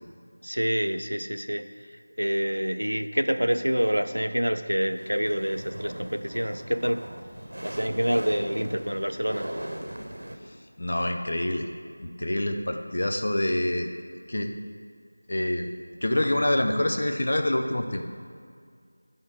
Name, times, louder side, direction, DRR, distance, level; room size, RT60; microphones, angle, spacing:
voice 1, 0.4-7.1 7.6-9.5, equal, 90° right, 9 dB, 0.5 m, -27 dB
sound 1, 5.0-10.4, right 1 dB, 65° right, 0.9 m, -38 dB
voice 2, 10.8-11.7 12.0-13.9 14.3-14.5 15.3-15.7 16.0-18.0, left 1 dB, 55° left, 4 dB, 0.7 m, -26 dB
9.4 x 3.6 x 7.1 m, 2.1 s
figure-of-eight pair, 170°, 0 cm